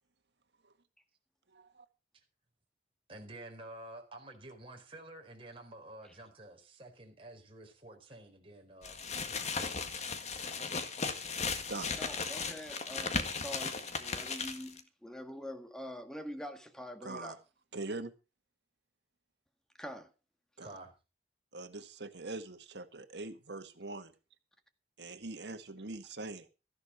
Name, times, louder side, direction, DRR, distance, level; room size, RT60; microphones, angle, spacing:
voice 1, 1.5-1.9 9.9-10.1 10.5-10.6 11.7-11.9 17.0-17.4 17.7-18.1 20.6-20.8 21.5-24.1 25.0-26.5, right 2 dB, 80° right, 1.8 m, -43 dB
voice 2, 3.1-9.7 20.6-20.9, right 1 dB, 30° right, 4.5 m, -50 dB
sound 1, 8.8-14.8, left 4 dB, 40° left, 1.8 m, -36 dB
voice 3, 12.0-17.4 19.8-20.1, equal, 5° left, 2.0 m, -45 dB
14.5 x 11.0 x 5.0 m
head